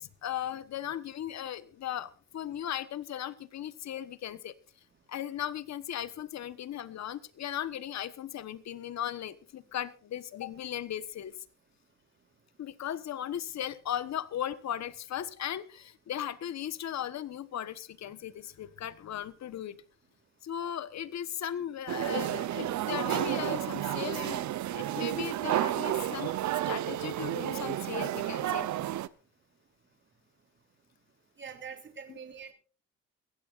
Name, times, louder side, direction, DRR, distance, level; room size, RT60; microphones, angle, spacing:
voice 1, 0.0-4.5 5.1-11.3 12.6-19.8 20.4-24.5 24.7-28.7 32.1-32.2, left 10 dB, 65° left, 15 dB, 1.3 m, -37 dB
sound 1, 21.9-29.1, right 13 dB, 70° right, 0.9 m, -31 dB
voice 2, 31.4-32.5, right 6 dB, 40° right, 5 dB, 3.1 m, -44 dB
22.5 x 15.5 x 2.5 m, 0.34 s
cardioid pair, 90°, 30 cm